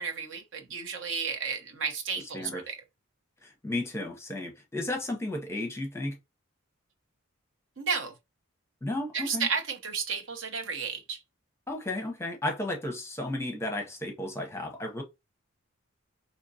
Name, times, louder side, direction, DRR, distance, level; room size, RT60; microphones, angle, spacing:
voice 1, 0.0-2.8 7.8-8.1 9.1-11.2, right 5 dB, 60° right, 0.9 m, -32 dB
voice 2, 3.4-6.2 8.8-9.5 11.7-15.0, left 1 dB, 10° left, 0.7 m, -33 dB
5.1 x 2.9 x 2.7 m
head